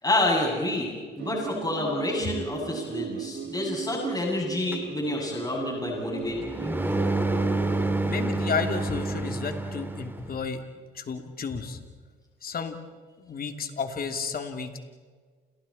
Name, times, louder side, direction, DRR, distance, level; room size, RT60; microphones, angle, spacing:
voice 1, 0.0-7.0, left 2 dB, 20° left, -2 dB, 7.6 m, -28 dB
sound 1, 1.2-7.1, right 9 dB, 60° right, 2.0 m, -37 dB
sound 2, 4.7-10.3, right 2 dB, 10° right, 2.6 m, -29 dB
voice 2, 8.1-10.6 10.9-11.8 12.4-12.8 13.2-14.8, left 5 dB, 50° left, 5 dB, 3.0 m, -32 dB
30.0 x 29.0 x 4.4 m, 1.5 s
cardioid pair, 90°, 20 cm